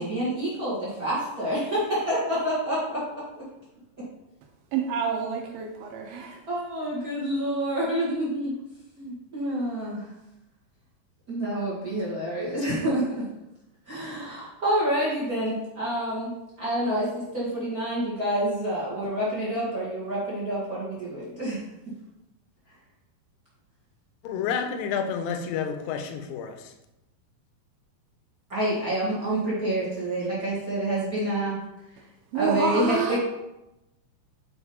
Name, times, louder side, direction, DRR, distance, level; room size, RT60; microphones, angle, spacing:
voice 1, 0.0-3.4 6.5-8.6 8.9-10.1 11.3-13.3 13.9-21.6 28.5-31.6 32.3-33.2, right 1 dB, 40° right, -7 dB, 1.3 m, -28 dB
voice 2, 4.7-6.4 32.3-33.2, right 6 dB, 80° right, 1 dB, 2.6 m, -28 dB
voice 3, 24.2-26.7, left 7 dB, 80° left, 6 dB, 2.3 m, -30 dB
7.1 x 4.6 x 4.2 m, 0.93 s
omnidirectional pair, 4.3 m